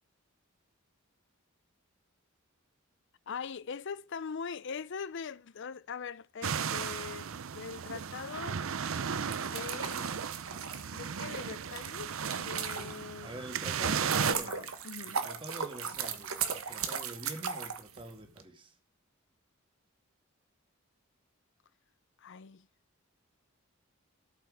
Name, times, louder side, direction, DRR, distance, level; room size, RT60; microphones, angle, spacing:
voice 1, 3.3-8.6 9.4-10.1 10.9-13.3 14.3-15.2 22.2-22.7, left 6 dB, 60° left, 0.6 m, -42 dB
sound 1, 6.4-14.3, right 7 dB, 70° right, 0.6 m, -35 dB
sound 2, 9.2-13.2 13.7-18.4, right 6 dB, 85° right, 1.3 m, -37 dB
voice 2, 13.2-14.7 15.0-18.7, right 1 dB, 25° right, 1.6 m, -46 dB
12.5 x 5.7 x 6.2 m
head